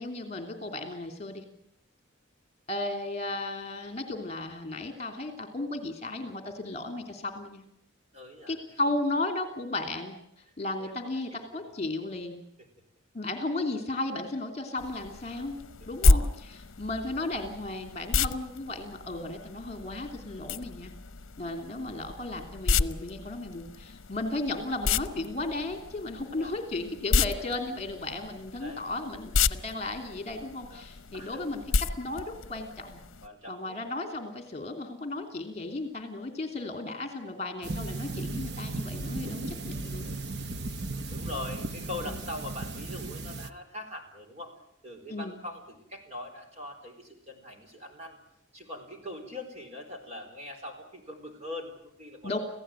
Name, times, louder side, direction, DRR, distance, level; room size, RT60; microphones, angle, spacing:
voice 1, 0.0-1.4 2.7-7.6 8.5-10.2 10.6-12.4 13.1-20.9 21.4-33.0 33.5-40.1 42.0-42.2 45.1-45.4 52.2-52.4, left 2 dB, 30° left, 6 dB, 3.0 m, -35 dB
voice 2, 8.1-8.6 10.8-11.7 12.6-12.7 15.8-16.4 26.2-26.5 28.6-28.9 30.7-31.4 33.2-33.8 41.1-44.5 44.8-48.2 48.5-52.3, left 1 dB, 30° right, 4 dB, 4.6 m, -42 dB
sound 1, 14.8-33.3, left 4 dB, 70° left, 0.8 m, -31 dB
sound 2, 37.6-43.5, right 2 dB, 50° right, 1.0 m, -36 dB
28.0 x 16.0 x 9.1 m, 0.79 s
head